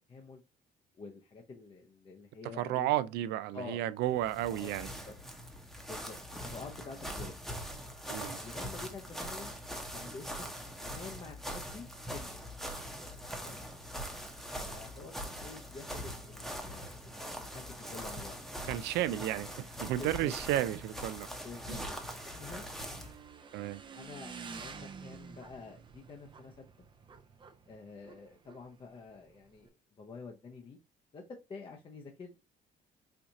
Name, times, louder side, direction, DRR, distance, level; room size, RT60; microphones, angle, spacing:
voice 1, 0.1-0.4 1.0-2.9 3.5-3.8 4.4-5.1 5.9-6.1 6.4-7.3 8.4-9.5 9.9-10.5 10.8-11.9 12.1-12.4 13.3-13.6 14.6-18.4 20.0-20.3 21.4-21.8 22.2-22.7 23.9-26.6 27.7-30.8 31.1-31.2 31.5-32.4, left 4 dB, 30° left, 0.6 m, -48 dB
voice 2, 2.6-4.9 8.1-8.4 18.7-21.3 21.7-21.8 23.5-23.8, right 13 dB, 80° right, 0.4 m, -32 dB
sound 1, 4.1-23.2, equal, ahead, 0.8 m, -42 dB
Motorcycle / Engine, 20.7-29.7, right 5 dB, 30° right, 0.5 m, -51 dB
4.4 x 2.4 x 2.6 m
cardioid pair, 110°, 17 cm